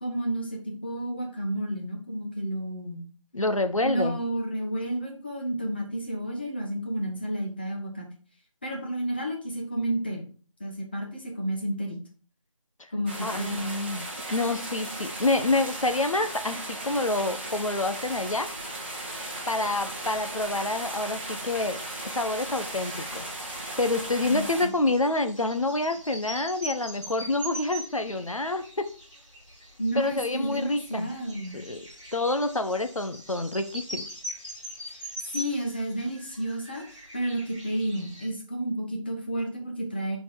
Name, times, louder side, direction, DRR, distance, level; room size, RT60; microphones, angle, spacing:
voice 1, 0.0-3.0 3.8-8.1 8.6-10.3 10.6-12.0 12.9-13.6 24.2-24.7 29.8-31.6 35.2-40.2, right 1 dB, 20° left, 0 dB, 0.8 m, -31 dB
voice 2, 3.3-4.2 13.2-18.5 19.5-23.3 23.8-28.8 29.9-31.1 31.5-31.8 32.1-34.1, left 2 dB, 75° left, 8 dB, 0.9 m, -27 dB
sound 1, 13.1-24.6, right 1 dB, 20° right, 1.0 m, -36 dB
sound 2, 21.6-38.3, equal, 5° left, 1.5 m, -43 dB
5.5 x 4.4 x 4.6 m, 0.40 s
figure-of-eight pair, 165°, 17 cm